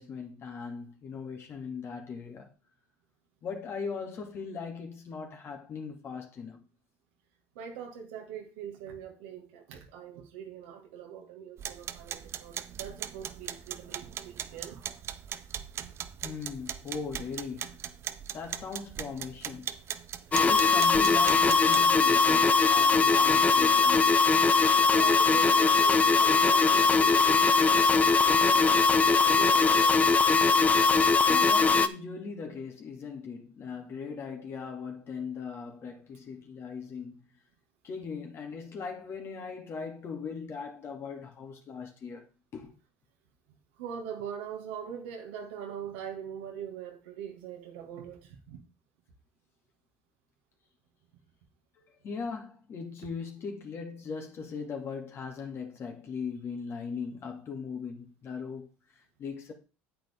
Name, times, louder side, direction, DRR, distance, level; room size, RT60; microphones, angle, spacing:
voice 1, 0.0-2.5 3.4-6.6 16.2-18.0 18.3-19.7 20.4-24.1 31.3-37.2 37.8-42.7 51.8-58.7 58.9-59.5, left 5 dB, 45° left, 2.5 m, -39 dB
voice 2, 7.6-15.0 24.9-30.2 43.8-48.6, right 8 dB, 85° right, 1.9 m, -42 dB
sound 1, 11.6-22.0, right 9 dB, 50° right, 0.8 m, -39 dB
sound 2, 20.3-31.9, left 4 dB, 25° left, 0.8 m, -21 dB
8.8 x 8.0 x 3.6 m
supercardioid pair, 80°, 6 cm